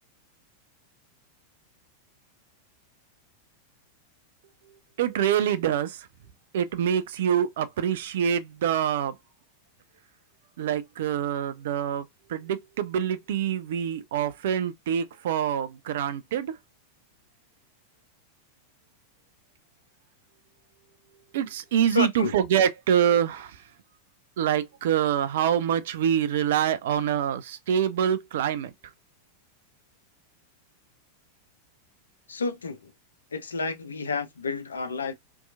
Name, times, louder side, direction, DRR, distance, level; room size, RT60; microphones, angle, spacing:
voice 1, 5.0-6.1 6.5-9.1 10.6-12.0 12.3-16.5 21.3-23.6 24.4-28.7, right 9 dB, 55° right, 0.4 m, -25 dB
voice 2, 21.9-22.3 32.3-32.9 33.3-35.1, left 4 dB, 70° left, 0.5 m, -30 dB
2.8 x 2.3 x 2.4 m
figure-of-eight pair, 90°, 0 cm